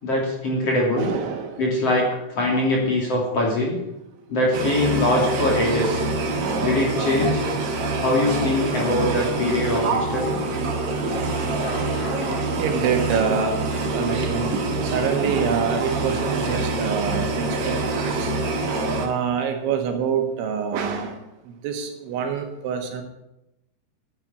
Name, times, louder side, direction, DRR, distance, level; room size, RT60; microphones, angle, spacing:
voice 1, 0.0-1.1 1.6-3.8 4.3-6.1 6.6-7.4 8.0-10.4 11.6-12.5 18.4-18.9, left 1 dB, 35° left, -2 dB, 3.2 m, -23 dB
voice 2, 1.0-1.7 2.5-2.9 6.3-6.9 11.5-11.9 12.6-13.6 13.9-14.6 14.9-18.3 19.0-21.2 21.6-23.0, right 7 dB, 75° right, 4 dB, 4.0 m, -26 dB
sound 1, 4.5-19.1, right 2 dB, 60° right, 1.6 m, -25 dB
11.5 x 9.0 x 8.5 m, 0.89 s
omnidirectional pair, 5.5 m